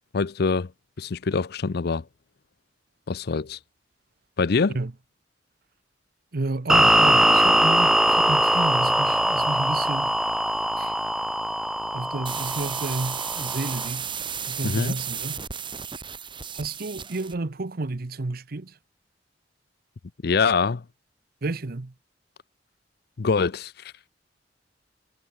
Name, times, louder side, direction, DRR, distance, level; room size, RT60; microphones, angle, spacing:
voice 1, 0.1-0.7 1.0-2.0 3.1-3.6 4.4-4.8 14.6-15.0 20.2-20.8 23.2-23.9, left 4 dB, 60° left, 0.6 m, -24 dB
voice 2, 6.3-10.1 10.8-10.9 11.9-14.1 14.5-15.4 16.5-18.8 21.4-21.9, right 2 dB, 55° right, 0.8 m, -31 dB
sound 1, 6.7-13.9, right 1 dB, 5° right, 0.4 m, -21 dB
sound 2, 12.2-17.4, right 7 dB, 25° right, 2.2 m, -33 dB
head